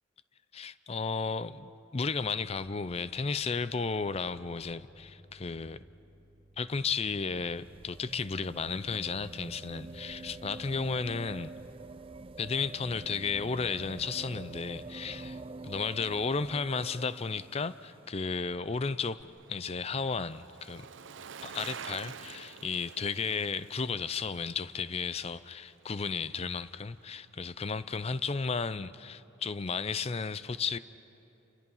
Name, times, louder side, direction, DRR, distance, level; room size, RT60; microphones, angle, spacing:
voice 1, 0.5-5.8 6.6-11.5 12.4-20.9 21.4-30.8, left 5 dB, 30° left, 15 dB, 0.5 m, -34 dB
Bass guitar, 4.9-11.6, equal, 5° right, 3.2 m, -58 dB
sound 1, 7.0-18.0 19.2-19.3, right 2 dB, 30° right, 0.5 m, -46 dB
Bicycle, 17.8-26.2 26.5-26.6, right 7 dB, 70° right, 0.6 m, -49 dB
29.5 x 27.0 x 5.6 m, 2.9 s
head